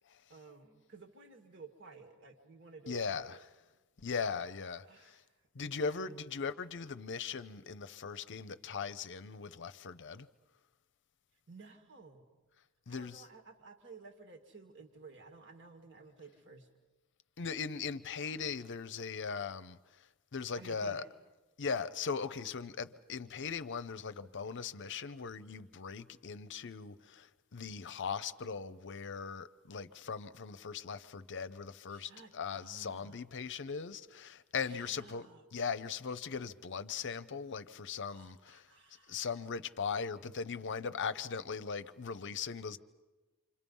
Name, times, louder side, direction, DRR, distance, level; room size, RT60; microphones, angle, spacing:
voice 1, 0.3-3.4 4.8-5.3 5.7-6.2 11.5-12.3 12.9-16.7 20.6-21.1 31.9-33.2 34.6-35.4 38.1-39.5, right 4 dB, 55° right, 2.0 m, -55 dB
voice 2, 2.9-3.4 4.0-5.2 5.5-10.3 12.9-13.2 17.4-19.8 20.3-21.0 21.6-38.7 39.1-42.8, left 5 dB, 55° left, 0.7 m, -39 dB
28.0 x 26.0 x 5.5 m
head